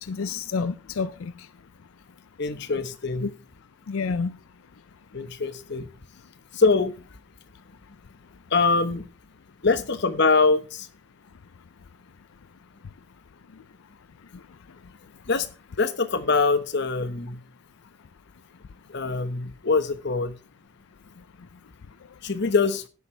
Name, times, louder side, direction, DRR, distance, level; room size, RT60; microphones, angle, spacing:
voice 1, 0.0-1.5 3.2-3.3 3.9-4.4, left 5 dB, 85° left, 0.5 m, -29 dB
voice 2, 2.4-3.3 5.1-5.9 6.5-6.9 8.5-9.0 9.6-10.9 15.3-15.5 15.8-17.4 18.9-20.4 22.2-22.8, left 4 dB, 55° left, 1.1 m, -23 dB
12.0 x 10.0 x 3.3 m
head